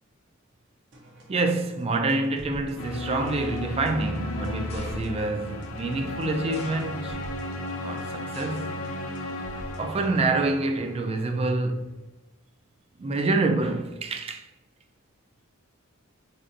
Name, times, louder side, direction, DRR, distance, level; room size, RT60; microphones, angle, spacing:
sound 1, 0.9-10.3, equal, 60° right, 0.7 m, -48 dB
voice 1, 1.3-7.2 7.8-8.8 9.8-12.0 13.0-14.5, right 2 dB, 30° right, 0.3 m, -27 dB
sound 2, 2.8-11.6, left 1 dB, 75° left, 0.5 m, -35 dB
sound 3, 4.7-5.4 6.5-7.3 8.3-8.8 9.2-9.7 10.5-10.6, left 3 dB, 30° left, 0.6 m, -48 dB
4.1 x 2.7 x 2.6 m
head